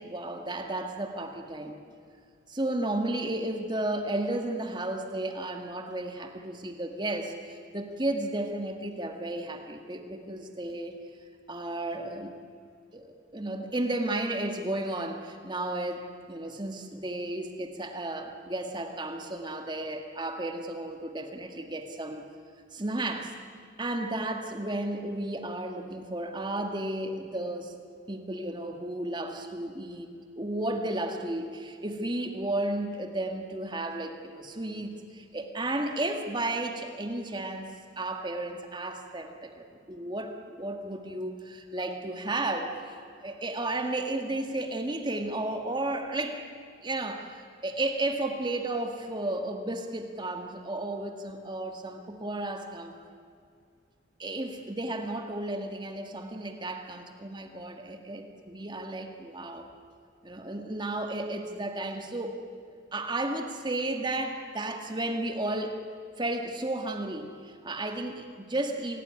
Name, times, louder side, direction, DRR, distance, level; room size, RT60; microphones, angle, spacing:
voice 1, 0.0-1.8 2.5-11.0 11.5-12.3 12.9-22.2 22.7-23.3 23.8-27.7 28.1-46.4 46.8-53.0 54.2-59.7 60.2-62.4 62.9-65.8 66.2-69.0, right 2 dB, 25° right, 4 dB, 1.9 m, -33 dB
26.0 x 17.5 x 9.7 m, 2.3 s
head